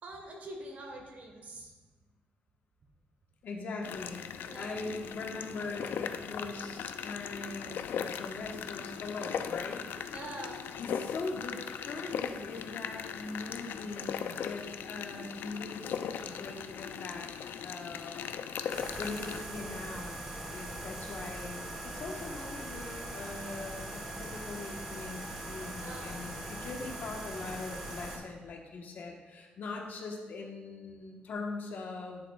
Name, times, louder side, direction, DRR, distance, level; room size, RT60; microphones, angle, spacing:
voice 1, 0.0-1.7 4.5-4.9 10.1-10.6 25.8-26.2, right 1 dB, 50° right, 1 dB, 1.3 m, -44 dB
voice 2, 3.4-4.2 4.5-9.8 10.8-17.3 17.6-18.2 19.0-20.2 20.5-32.3, left 3 dB, 60° left, 1 dB, 1.1 m, -41 dB
sound 1, 3.8-19.4, left 8 dB, 80° left, 0.4 m, -39 dB
sound 2, 18.7-28.2, right 1 dB, 15° right, 1.9 m, -41 dB
10.5 x 6.9 x 2.3 m, 1.3 s
wide cardioid pair, 150°, 3 cm